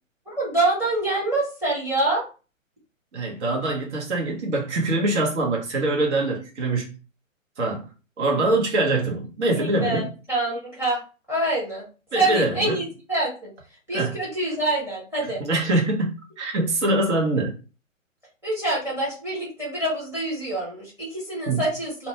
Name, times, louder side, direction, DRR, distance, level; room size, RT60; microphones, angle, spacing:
voice 1, 0.3-2.2 9.5-11.0 11.3-11.8 12.1-13.5 13.9-15.4 18.4-22.1, right 2 dB, 5° right, 0.9 m, -26 dB
voice 2, 3.1-6.9 7.6-7.9 8.2-10.1 12.1-12.8 13.9-14.1 15.4-17.5 21.5-21.6, right 2 dB, 60° right, 1.1 m, -24 dB
2.6 x 2.2 x 2.9 m
figure-of-eight pair, 130°, 40 cm